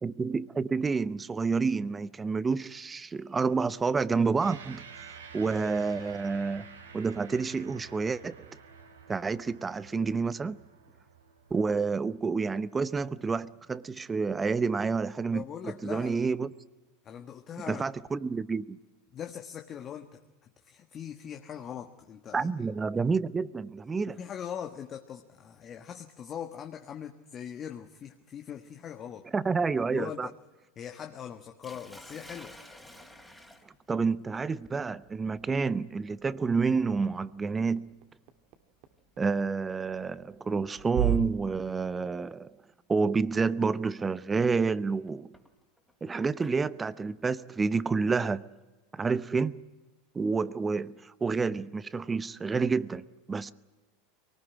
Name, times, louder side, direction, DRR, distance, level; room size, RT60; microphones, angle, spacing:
voice 1, 0.0-4.8 5.3-6.7 6.9-8.5 9.1-10.6 11.5-16.5 17.7-18.8 22.3-24.2 29.3-30.3 33.9-37.9 39.2-42.5 42.9-45.3 46.0-48.5 48.9-49.6 50.1-53.5, right 4 dB, 20° right, 0.8 m, -29 dB
sound 1, 4.4-13.1, right 6 dB, 90° right, 3.0 m, -50 dB
voice 2, 15.3-16.3 17.0-17.8 19.1-20.2 20.6-22.5 24.1-29.3 29.9-30.3 30.8-32.6, left 9 dB, 35° left, 1.4 m, -41 dB
Sink (filling or washing), 31.6-41.6 42.7-43.0 43.5-43.6 45.1-46.6, left 1 dB, ahead, 3.3 m, -55 dB
sound 2, 37.2-41.2, right 11 dB, 60° right, 1.9 m, -37 dB
23.5 x 19.0 x 9.9 m
hypercardioid pair, 90°, 0 cm